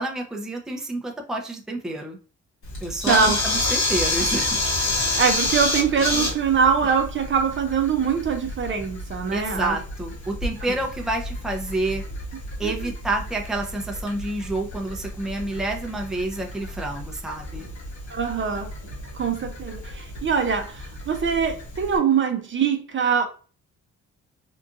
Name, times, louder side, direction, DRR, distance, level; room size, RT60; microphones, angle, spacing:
voice 1, 0.0-2.2 2.8-4.6 9.3-12.0 12.6-17.7, right 2 dB, ahead, 1 dB, 0.6 m, -29 dB
Camera, 2.6-22.0, left 2 dB, 65° left, 1.7 m, -30 dB
voice 2, 3.1-3.4 5.2-9.8 12.6-12.7 18.1-18.7 19.1-23.3, right 6 dB, 40° right, 5 dB, 0.6 m, -23 dB
3.7 x 2.6 x 2.4 m, 0.39 s
cardioid pair, 90°, 30 cm